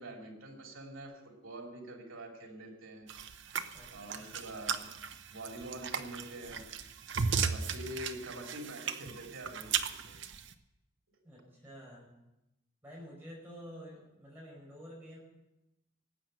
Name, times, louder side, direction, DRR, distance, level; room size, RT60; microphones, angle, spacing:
voice 1, 0.0-3.1 3.9-4.9 5.3-6.7 7.4-10.2, right 1 dB, 85° right, 2 dB, 2.9 m, -45 dB
sound 1, 3.1-10.5, right 6 dB, 65° right, 0.8 m, -36 dB
voice 2, 3.7-4.3 11.2-12.1 12.8-15.2, equal, 10° right, -4 dB, 5.0 m, -50 dB
18.5 x 7.9 x 7.7 m, 0.92 s
head